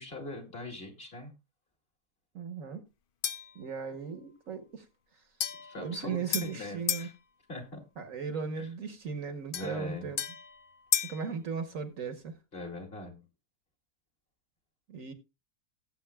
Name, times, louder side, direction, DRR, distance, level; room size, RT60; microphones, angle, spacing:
voice 1, 0.0-1.3 5.6-7.1 7.5-7.8 8.6-8.7 9.5-10.1 12.5-13.2, left 2 dB, 35° left, 2.6 m, -42 dB
voice 2, 2.3-2.8 3.5-4.9 5.8-7.1 8.0-10.2 11.0-12.3 14.9-15.1, right 6 dB, 55° right, 1.3 m, -37 dB
sound 1, 3.2-3.6 5.4-7.1 9.5-11.3, left 8 dB, 85° left, 0.4 m, -34 dB
17.5 x 7.8 x 2.2 m
omnidirectional pair, 1.7 m